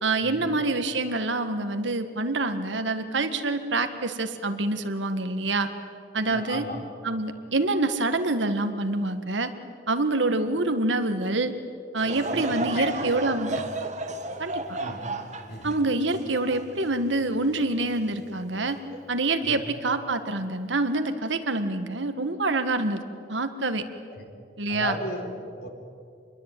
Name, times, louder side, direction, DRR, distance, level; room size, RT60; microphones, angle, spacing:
voice 1, 0.0-5.7 6.1-6.7 7.0-9.5 9.9-11.5 11.9-13.6 14.4-14.8 15.6-18.8 19.1-23.0 23.3-23.8 24.6-25.0, right 2 dB, 70° right, 8 dB, 1.8 m, -26 dB
voice 2, 6.2-6.8 12.3-12.9 14.8-15.1 15.5-15.8 19.4-19.6 24.1-24.3 24.7-25.7, left 1 dB, 55° left, 4 dB, 3.9 m, -35 dB
Laughter / Crowd, 12.0-17.4 18.0-18.1 18.9-19.1, right 2 dB, 40° right, 2.0 m, -33 dB
27.5 x 22.0 x 9.2 m, 2.4 s
head